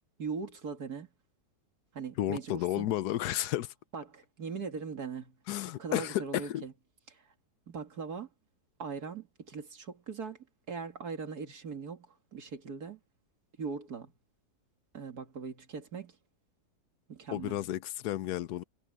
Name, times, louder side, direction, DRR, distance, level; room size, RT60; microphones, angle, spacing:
voice 1, 0.2-1.1 1.9-3.0 3.9-5.4 5.8-6.7 7.1-7.3 7.7-8.3 8.8-10.4 10.7-13.0 13.6-14.1 14.9-16.2 17.1-17.6, right 5 dB, 70° right, 2.7 m, -40 dB
voice 2, 2.2-3.7 5.5-6.6 17.3-18.6, left 13 dB, 80° left, 1.2 m, -32 dB
omnidirectional pair, 1.7 m